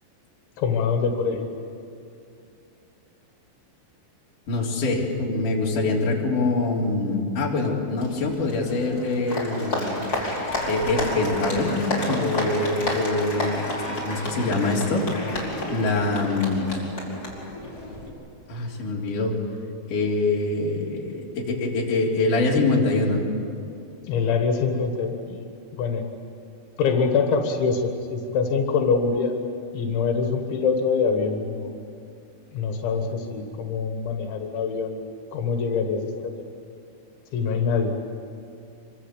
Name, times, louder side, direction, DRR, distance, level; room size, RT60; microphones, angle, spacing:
voice 1, 0.6-1.6 24.1-25.5 25.8-26.0 26.8-29.4 29.7-31.7 32.5-35.0 35.3-36.3 37.3-37.9, left 5 dB, 85° left, 4 dB, 4.1 m, -24 dB
voice 2, 4.5-9.9 10.7-13.6 14.0-15.3 15.7-16.8 18.5-19.3 19.9-23.2, left 3 dB, 45° left, -3 dB, 4.9 m, -24 dB
Applause, 8.0-18.1, left 1 dB, 20° left, 5.0 m, -30 dB
26.0 x 24.5 x 8.3 m, 2.6 s
omnidirectional pair, 5.2 m